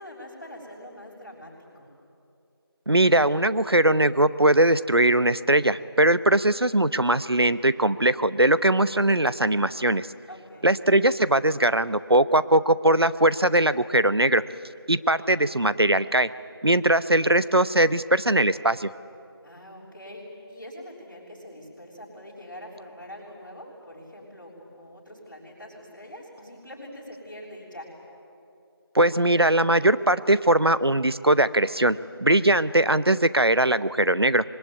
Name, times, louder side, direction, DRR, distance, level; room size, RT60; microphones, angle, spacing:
voice 1, 0.0-1.9 10.3-10.7 19.4-27.9, left 1 dB, 50° left, -6 dB, 6.7 m, -43 dB
voice 2, 2.9-10.1 10.6-14.4 14.9-16.3 16.6-18.9 28.9-34.4, right 1 dB, 70° right, 15 dB, 0.9 m, -20 dB
25.5 x 21.0 x 9.5 m, 2.6 s
figure-of-eight pair, 180°, 13 cm